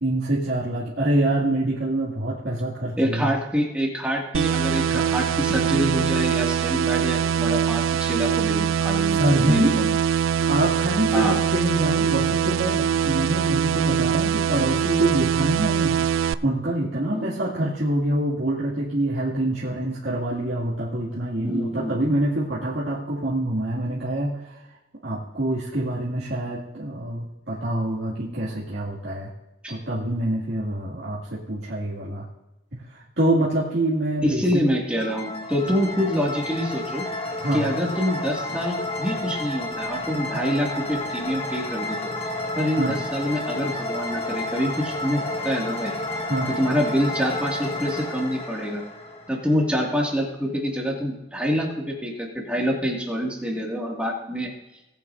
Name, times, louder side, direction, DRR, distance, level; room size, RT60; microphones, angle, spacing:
voice 1, 0.0-3.3 4.9-5.0 9.0-9.7 10.5-24.6 25.0-29.3 29.7-32.3 32.9-34.6 37.4-37.7 42.8-43.0 46.3-46.5, right 1 dB, 60° right, -8 dB, 2.3 m, -25 dB
voice 2, 3.0-9.2 9.5-9.9 11.1-11.4 17.1-17.3 21.4-22.0 29.6-29.7 34.2-37.1 37.5-42.1 42.6-45.9 46.5-48.8 49.3-54.5, equal, 5° right, -2 dB, 2.2 m, -26 dB
sound 1, 4.3-16.3, right 8 dB, 80° right, 0.3 m, -23 dB
sound 2, 35.0-49.8, left 1 dB, 30° left, 1.4 m, -31 dB
19.0 x 9.1 x 2.7 m, 0.96 s
head